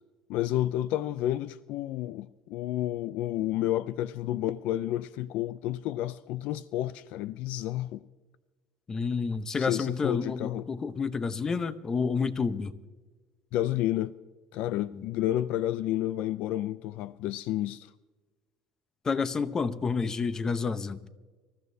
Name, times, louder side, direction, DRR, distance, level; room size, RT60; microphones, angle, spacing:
voice 1, 0.3-8.0 9.5-10.7 13.5-14.1 14.5-17.9, left 13 dB, 70° left, 0.4 m, -30 dB
voice 2, 8.9-12.7 14.9-15.0 19.0-21.0, left 5 dB, 25° left, 0.8 m, -29 dB
26.0 x 14.0 x 2.7 m
cardioid pair, 125°, 2 cm